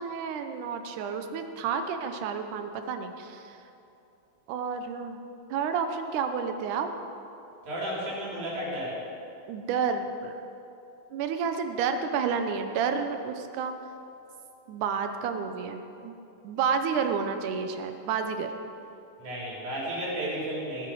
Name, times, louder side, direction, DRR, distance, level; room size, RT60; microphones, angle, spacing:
voice 1, 0.0-3.4 4.5-5.2 5.5-6.9 9.5-10.3 11.1-13.7 14.7-16.1 16.4-18.5, right 6 dB, 70° right, 7 dB, 2.0 m, -30 dB
voice 2, 7.6-9.0 19.2-20.9, right 1 dB, 55° right, -5 dB, 4.8 m, -33 dB
18.0 x 9.6 x 6.3 m, 2.8 s
omnidirectional pair, 4.3 m